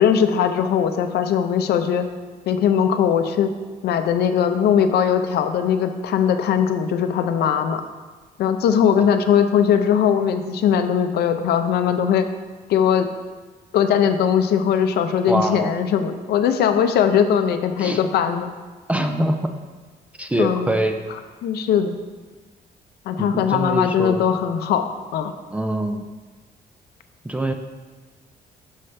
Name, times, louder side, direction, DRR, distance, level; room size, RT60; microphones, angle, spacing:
voice 1, 0.0-2.0 2.5-3.5 3.8-7.8 8.4-12.3 12.7-13.1 13.7-18.5 20.4-20.7 21.4-21.9 23.1-24.8 25.1-25.3, left 8 dB, 75° left, 8 dB, 0.5 m, -20 dB
voice 2, 15.3-15.7 17.8-18.0 18.9-19.4 20.2-21.0 23.2-24.3 25.5-26.0 27.2-27.5, right 1 dB, 10° right, 5 dB, 0.3 m, -24 dB
6.4 x 5.6 x 3.2 m, 1.3 s
cardioid pair, 155°, 17 cm